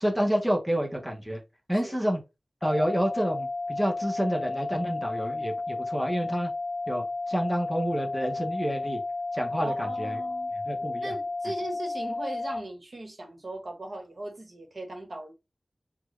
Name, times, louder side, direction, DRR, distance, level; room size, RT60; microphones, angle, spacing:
voice 1, 0.0-1.4 1.7-2.2 2.6-6.5 6.9-9.0 9.3-10.2 10.7-11.1, equal, ahead, 0.9 m, -29 dB
sound 1, 2.6-12.6, left 3 dB, 40° left, 0.3 m, -32 dB
voice 2, 9.6-10.5 11.0-15.3, right 2 dB, 65° right, 1.1 m, -38 dB
4.2 x 2.2 x 3.1 m
wide cardioid pair, 75°, 0 cm